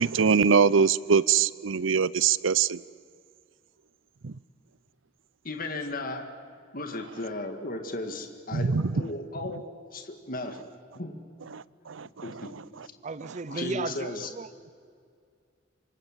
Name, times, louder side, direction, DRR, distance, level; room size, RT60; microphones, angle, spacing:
voice 1, 0.0-2.8 4.2-4.4 8.5-9.0 11.5-12.5, right 6 dB, 85° right, 0.6 m, -23 dB
voice 2, 5.4-6.3 6.7-9.7 9.9-10.7 10.9-11.2 12.2-12.5 12.8-12.9 13.5-14.3, left 2 dB, 45° left, 1.9 m, -35 dB
voice 3, 13.0-14.7, right 3 dB, 40° right, 0.6 m, -35 dB
27.5 x 25.0 x 7.5 m
head